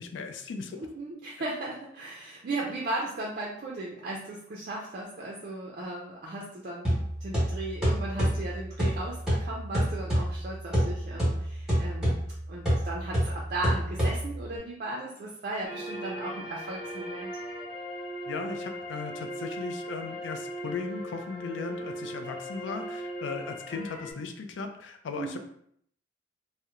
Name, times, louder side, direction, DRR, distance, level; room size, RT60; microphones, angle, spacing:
voice 1, 0.0-0.8 18.3-25.4, left 4 dB, 80° left, 6 dB, 0.4 m, -37 dB
voice 2, 0.7-12.2 12.5-17.3 25.2-25.4, right 2 dB, 50° right, -3 dB, 0.4 m, -36 dB
sound 1, 6.8-14.6, equal, 5° right, 0.9 m, -28 dB
sound 2, 15.6-24.1, equal, 55° left, 0.9 m, -38 dB
2.8 x 2.1 x 2.3 m, 0.67 s
head